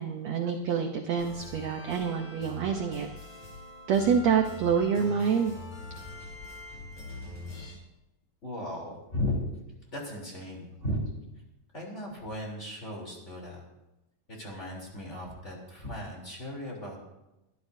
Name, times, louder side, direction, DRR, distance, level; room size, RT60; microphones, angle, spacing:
voice 1, 0.0-3.1 3.9-5.5, right 6 dB, 75° right, 4 dB, 1.6 m, -27 dB
sound 1, 1.2-7.7, left 2 dB, 50° left, 6.1 m, -43 dB
voice 2, 8.4-9.4 9.9-11.0 11.7-13.6 14.3-17.0, left 1 dB, 20° left, -2 dB, 3.4 m, -36 dB
23.0 x 13.0 x 2.7 m, 0.95 s
omnidirectional pair, 4.1 m